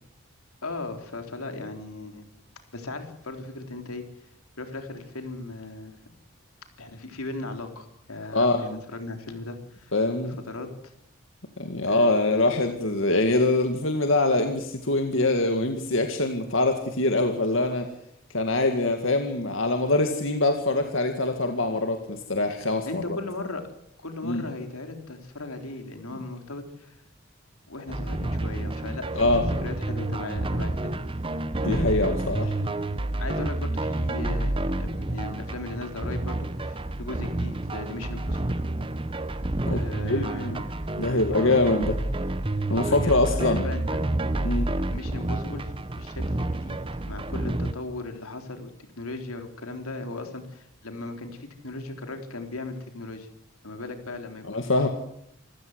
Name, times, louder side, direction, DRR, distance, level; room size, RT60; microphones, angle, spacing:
voice 1, 0.6-2.3 2.7-4.0 4.6-6.0 6.8-9.9 10.2-10.9 11.8-12.5 22.9-23.6 24.0-27.0 27.7-29.2 29.6-30.9 31.6-32.1 33.2-38.6 39.7-40.7 41.0-41.6 42.7-44.0 44.9-46.8 47.1-48.7 49.0-53.3 53.6-54.6, left 2 dB, 90° left, 6 dB, 3.7 m, -37 dB
voice 2, 8.3-8.8 9.9-10.4 11.6-17.9 18.3-23.2 24.2-24.4 29.2-29.4 31.6-32.5 39.7-40.6 41.0-42.0 42.7-43.7 44.4-44.7 54.5-54.9, left 2 dB, 65° left, 5 dB, 2.0 m, -24 dB
sound 1, 27.9-47.7, right 1 dB, 25° right, 0.9 m, -29 dB
26.0 x 15.0 x 8.0 m, 0.73 s
head